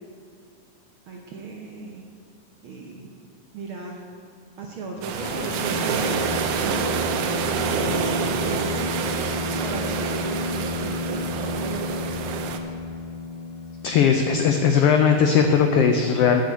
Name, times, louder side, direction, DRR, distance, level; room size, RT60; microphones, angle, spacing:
voice 1, 1.1-2.0 2.6-3.1 3.5-4.0 4.6-7.5 8.4-9.1 9.6-12.5, right 3 dB, 70° right, -1 dB, 1.2 m, -36 dB
sound 1, 5.0-12.6, right 6 dB, 85° right, 2.2 m, -27 dB
sound 2, 5.1-14.9, left 3 dB, 40° left, 2.9 m, -32 dB
voice 2, 13.8-16.4, left 6 dB, 90° left, 5 dB, 1.3 m, -18 dB
9.4 x 6.3 x 8.3 m, 2.2 s
omnidirectional pair, 3.4 m